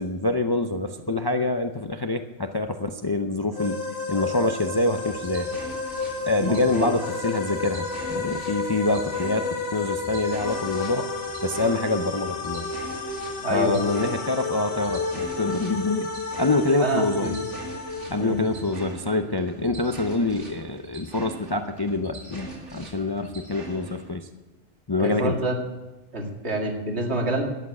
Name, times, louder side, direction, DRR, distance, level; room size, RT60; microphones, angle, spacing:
voice 1, 0.0-3.8 4.1-5.5 6.2-11.1 11.4-12.7 13.5-16.1 16.4-17.3 18.1-24.3 24.9-25.3, left 2 dB, 30° left, 6 dB, 0.5 m, -26 dB
sound 1, 3.5-18.9, left 4 dB, 60° left, 1.9 m, -31 dB
sound 2, 4.9-24.1, right 2 dB, 90° right, 3.1 m, -42 dB
voice 2, 6.4-6.9 13.4-13.9 16.8-17.4 18.2-18.5 25.0-25.6 26.1-27.4, right 2 dB, 65° right, 1 dB, 2.4 m, -27 dB
12.5 x 8.6 x 8.4 m, 1.1 s
omnidirectional pair, 1.2 m